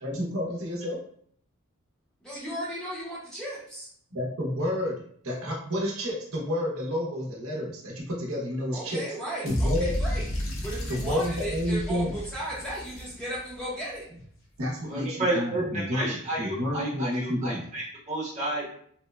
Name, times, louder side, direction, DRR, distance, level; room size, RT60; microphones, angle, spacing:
voice 1, 0.0-1.0 4.1-9.0 9.4-10.0 10.9-12.2 14.6-17.6, left 1 dB, 80° right, -3 dB, 0.7 m, -30 dB
voice 2, 2.2-3.9 8.7-10.3 10.6-14.1, right 1 dB, 5° left, -7 dB, 0.5 m, -35 dB
sound 1, 9.5-13.6, equal, 65° left, 0.6 m, -31 dB
voice 3, 14.9-18.7, right 1 dB, 30° right, -6 dB, 0.9 m, -31 dB
2.8 x 2.1 x 2.2 m, 0.62 s
head